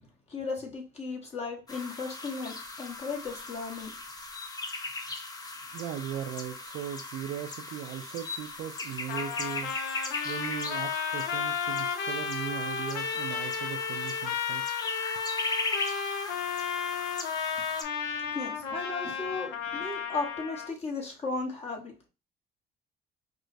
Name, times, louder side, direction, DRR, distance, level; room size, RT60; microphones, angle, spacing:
voice 1, 0.3-3.9 18.2-22.1, left 3 dB, 40° left, 1.0 m, -36 dB
sound 1, 1.7-17.8, left 3 dB, 20° left, 0.7 m, -39 dB
voice 2, 5.7-9.7 10.2-14.6, right 10 dB, 70° right, 0.4 m, -38 dB
Trumpet, 9.1-20.7, left 6 dB, 85° left, 0.8 m, -33 dB
4.6 x 2.1 x 2.5 m
cardioid pair, 110°, 17 cm